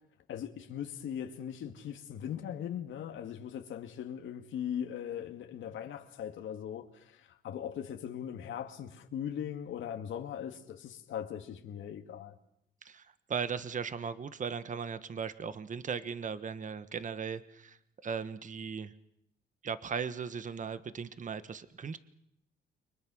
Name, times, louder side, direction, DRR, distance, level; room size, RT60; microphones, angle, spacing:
voice 1, 0.3-12.3, left 9 dB, 75° left, 2.2 m, -39 dB
voice 2, 12.8-18.9 19.6-22.0, right 6 dB, 40° right, 1.4 m, -38 dB
29.5 x 24.0 x 6.4 m
cardioid pair, 90°, 20 cm